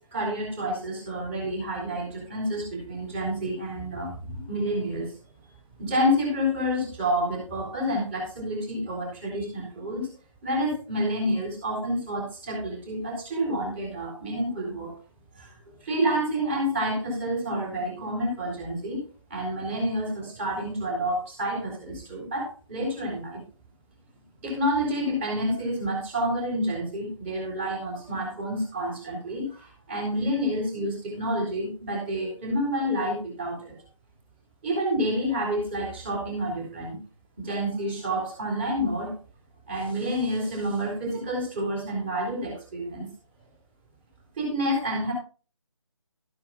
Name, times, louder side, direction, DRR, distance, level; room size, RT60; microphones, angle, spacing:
voice 1, 0.0-5.1 5.8-10.1 10.4-14.9 15.3-15.5 15.8-19.0 19.3-23.4 24.4-33.8 34.6-37.0 37.4-39.1 39.7-43.1 44.4-45.1, equal, 20° right, 0 dB, 3.8 m, -29 dB
12.5 x 10.5 x 2.4 m, 0.36 s
figure-of-eight pair, 155°, 17 cm